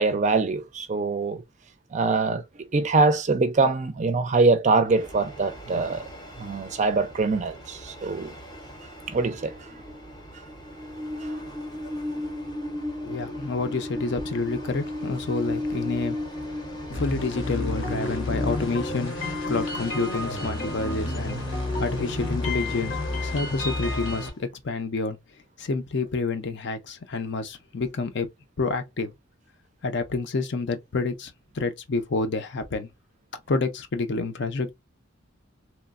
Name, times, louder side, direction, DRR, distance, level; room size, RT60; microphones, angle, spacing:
voice 1, 0.0-1.4 1.9-6.1 6.4-8.4 9.1-9.7 11.2-11.3, right 3 dB, 35° right, 0.4 m, -24 dB
Train, 4.9-24.4, left 1 dB, 20° left, 0.6 m, -36 dB
voice 2, 13.0-16.2 16.9-21.4 21.8-25.2 25.6-28.3 28.6-29.1 29.8-32.9 33.5-34.7, left 3 dB, 60° left, 0.5 m, -28 dB
sound 1, 16.9-24.3, left 2 dB, 90° left, 1.1 m, -31 dB
3.0 x 2.1 x 2.4 m
head